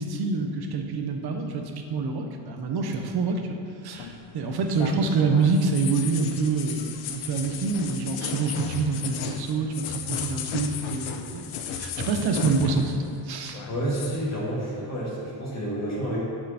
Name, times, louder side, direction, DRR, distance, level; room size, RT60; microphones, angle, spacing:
voice 1, 0.0-3.4 3.8-11.4 11.8-13.6, right 4 dB, 55° right, 4 dB, 0.9 m, -26 dB
sound 1, 4.0-13.1 13.3-14.2, left 7 dB, 85° left, 0.8 m, -35 dB
voice 2, 13.7-16.2, right 1 dB, 35° left, -8 dB, 1.7 m, -29 dB
9.6 x 5.0 x 4.2 m, 2.6 s
cardioid pair, 140°, 47 cm